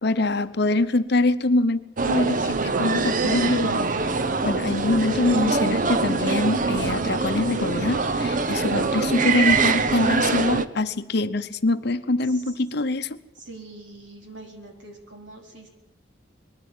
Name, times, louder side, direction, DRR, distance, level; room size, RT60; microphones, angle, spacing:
voice 1, 0.0-1.8 2.0-3.9 4.4-13.2, left 2 dB, 55° left, 11 dB, 0.9 m, -24 dB
sound 1, 2.0-10.7, right 4 dB, 40° right, 0.9 m, -24 dB
voice 2, 11.9-12.6 13.3-15.7, right 2 dB, 65° right, 2 dB, 4.6 m, -44 dB
21.5 x 14.0 x 9.1 m, 1.0 s
head